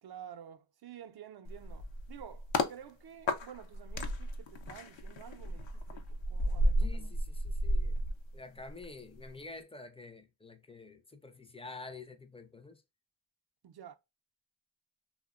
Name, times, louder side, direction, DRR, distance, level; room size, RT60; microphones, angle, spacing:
voice 1, 0.0-7.1 13.6-14.0, right 9 dB, 55° right, 0.5 m, -51 dB
sound 1, 1.5-2.7 3.3-8.8 9.2-9.4, equal, 70° left, 0.6 m, -33 dB
voice 2, 6.8-12.8, left 3 dB, 15° left, 0.4 m, -49 dB
2.7 x 2.1 x 2.3 m
cardioid pair, 50°, 48 cm